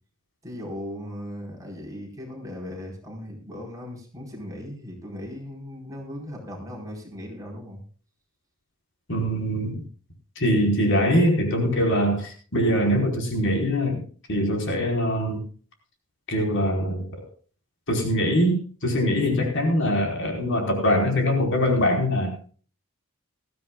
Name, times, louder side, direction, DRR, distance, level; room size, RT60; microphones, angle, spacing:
voice 1, 0.4-7.8, left 1 dB, 15° right, -1 dB, 4.5 m, -37 dB
voice 2, 9.1-9.8 10.4-14.0 14.3-15.4 16.3-17.1 17.9-22.3, equal, 60° left, 2 dB, 4.7 m, -23 dB
20.5 x 14.5 x 2.4 m, 0.40 s
head